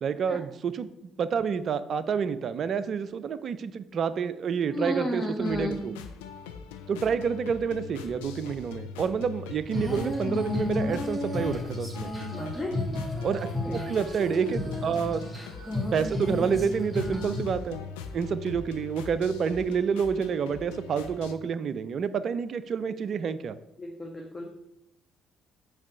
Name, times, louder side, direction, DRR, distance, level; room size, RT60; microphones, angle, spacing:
voice 1, 0.0-5.9 6.9-12.1 13.2-15.2 15.9-17.8 18.1-23.6, right 6 dB, 45° right, 14 dB, 0.3 m, -28 dB
voice 2, 4.7-5.7 12.3-12.8 13.7-13.8 23.8-24.7, left 1 dB, 20° left, -1 dB, 0.8 m, -32 dB
sound 1, 5.4-21.3, left 6 dB, 70° left, 0.4 m, -42 dB
Female singing, 9.7-17.4, left 1 dB, 10° right, 1.5 m, -32 dB
7.2 x 2.7 x 5.2 m, 0.86 s
figure-of-eight pair, 45°, 0 cm